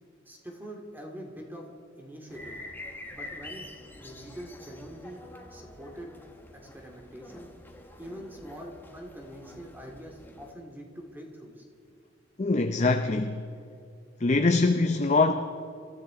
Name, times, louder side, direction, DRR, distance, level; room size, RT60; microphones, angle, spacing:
voice 1, 0.3-1.7 2.0-2.6 3.1-3.6 3.9-5.2 5.5-6.1 6.7-7.5 8.0-11.6, equal, 10° right, 2.2 m, -44 dB
sound 1, 2.3-10.5, left 1 dB, 10° left, 1.3 m, -46 dB
voice 2, 12.4-13.5 14.2-15.3, left 3 dB, 35° left, 0.6 m, -23 dB
26.5 x 13.5 x 3.8 m
head